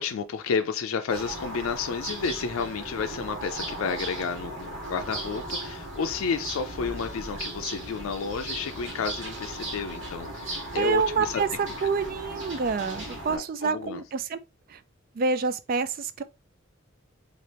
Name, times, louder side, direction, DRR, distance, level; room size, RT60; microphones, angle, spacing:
voice 1, 0.0-11.4 13.3-14.0, left 5 dB, 90° left, 0.4 m, -31 dB
sound 1, 1.1-13.4, right 1 dB, 65° right, 1.2 m, -37 dB
voice 2, 10.8-11.5 11.8-14.4 14.7-14.8 15.1-16.2, right 5 dB, 45° right, 0.3 m, -27 dB
4.3 x 2.5 x 3.3 m
head